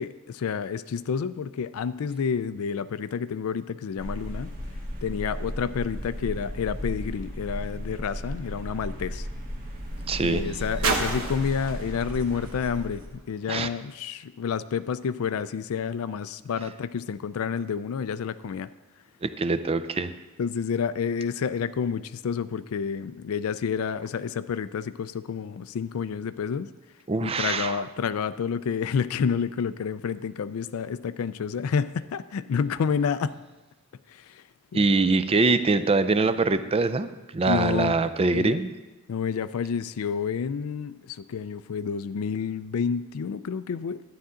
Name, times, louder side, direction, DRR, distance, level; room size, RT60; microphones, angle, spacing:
voice 1, 0.0-4.5 5.0-9.3 10.2-18.7 20.4-26.7 27.2-33.3 34.1-34.4 34.7-34.8 37.5-38.6 39.1-44.0, left 6 dB, 80° left, 14 dB, 0.4 m, -29 dB
sound 1, 4.0-13.1, equal, 45° right, 1.3 m, -35 dB
sound 2, 9.1-13.8 14.6-14.7, right 3 dB, 85° right, 1.2 m, -35 dB
voice 2, 10.1-10.4 13.5-13.7 19.2-20.1 27.1-27.8 34.7-38.7, right 3 dB, 25° right, 12 dB, 0.4 m, -23 dB
11.5 x 9.5 x 3.8 m, 1.1 s
head